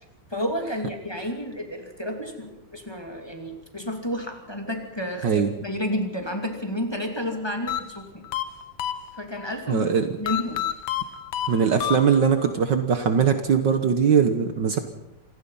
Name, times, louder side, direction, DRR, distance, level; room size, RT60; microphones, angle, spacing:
voice 1, 0.3-8.3 9.1-9.9 10.2-10.6, left 1 dB, 10° left, 3 dB, 2.5 m, -31 dB
sound 1, 7.7-9.5 10.3-12.5, left 11 dB, 85° left, 2.0 m, -30 dB
voice 2, 9.7-10.1 11.5-14.8, right 6 dB, 60° right, 8 dB, 1.8 m, -21 dB
26.5 x 18.0 x 5.6 m, 0.88 s
omnidirectional pair, 2.4 m